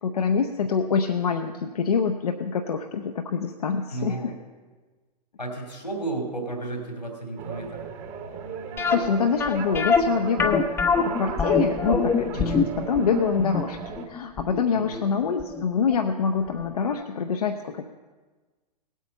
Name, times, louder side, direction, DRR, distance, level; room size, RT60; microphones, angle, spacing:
voice 1, 0.0-4.3 8.9-10.7 11.0-17.8, left 6 dB, 65° left, 5 dB, 0.7 m, -25 dB
voice 2, 3.9-4.4 5.4-7.8 12.4-12.6 14.7-15.0, right 2 dB, 90° left, 2 dB, 2.9 m, -33 dB
sound 1, 7.4-14.1, right 6 dB, 35° right, 1.3 m, -37 dB
sound 2, 8.8-15.6 15.9-16.0 16.6-16.7 17.0-17.1, left 5 dB, 10° left, 0.6 m, -24 dB
17.5 x 8.4 x 5.4 m, 1.3 s
figure-of-eight pair, 105°, 21 cm